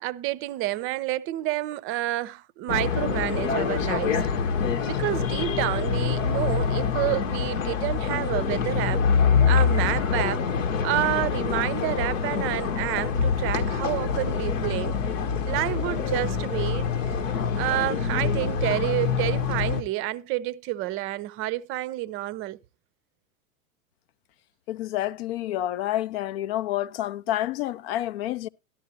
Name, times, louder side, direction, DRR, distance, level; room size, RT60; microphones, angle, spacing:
voice 1, 0.0-4.3 4.8-9.0 9.4-10.4 10.8-14.9 15.5-16.9 17.6-22.6, right 16 dB, 30° right, 0.6 m, -29 dB
sound 1, 2.7-19.8, left 6 dB, 65° left, 1.1 m, -25 dB
voice 2, 24.7-28.5, left 14 dB, 50° left, 0.6 m, -29 dB
12.5 x 12.5 x 2.7 m
figure-of-eight pair, 95°, 41 cm